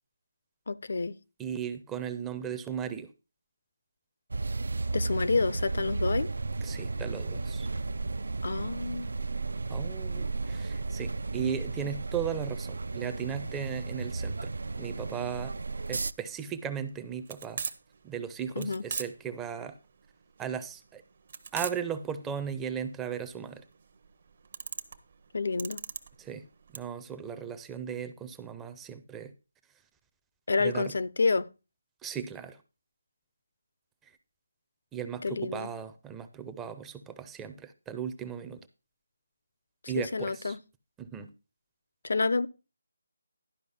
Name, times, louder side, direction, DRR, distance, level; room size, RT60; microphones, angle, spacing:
voice 1, 0.7-1.2 4.9-6.3 8.4-9.1 18.6-18.8 25.3-25.8 30.5-31.5 35.2-35.7 39.8-40.6 42.0-42.5, left 4 dB, 65° left, 0.6 m, -29 dB
voice 2, 1.4-3.1 6.6-7.7 9.7-14.5 14.8-15.5 15.9-17.6 18.0-19.8 20.4-21.0 21.5-23.6 26.2-26.5 26.7-29.3 30.6-30.9 32.0-32.6 34.9-38.6 39.9-40.6 41.0-41.3, right 8 dB, 10° right, 0.5 m, -36 dB
sound 1, 4.3-16.1, right 3 dB, 75° right, 0.4 m, -34 dB
sound 2, 15.9-26.8, right 5 dB, 45° right, 0.8 m, -40 dB
11.5 x 5.2 x 5.4 m
figure-of-eight pair, 165°, 0 cm